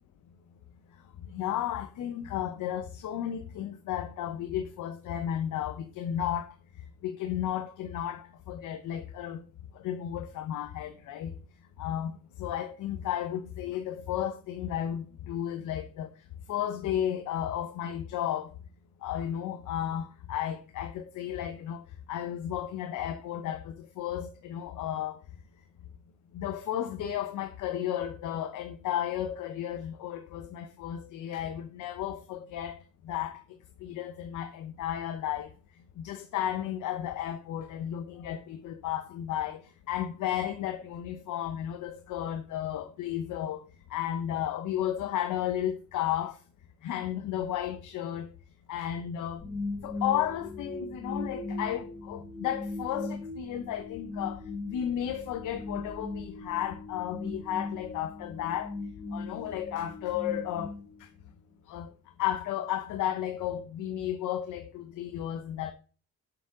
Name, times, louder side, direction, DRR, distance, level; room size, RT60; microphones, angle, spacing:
voice 1, 1.2-9.4 9.7-11.4 11.8-16.1 16.5-18.6 19.0-25.2 26.3-32.8 33.0-33.4 33.8-35.5 36.0-43.6 43.9-46.4 46.8-48.3 48.7-49.4 49.8-58.8 59.1-60.7 61.0-61.1 61.7-61.9 62.2-65.7, left 11 dB, 80° left, 0.8 m, -33 dB
sound 1, 49.4-61.5, left 3 dB, 15° left, 5.2 m, -39 dB
7.6 x 7.0 x 3.7 m
cardioid pair, 90°, 30 cm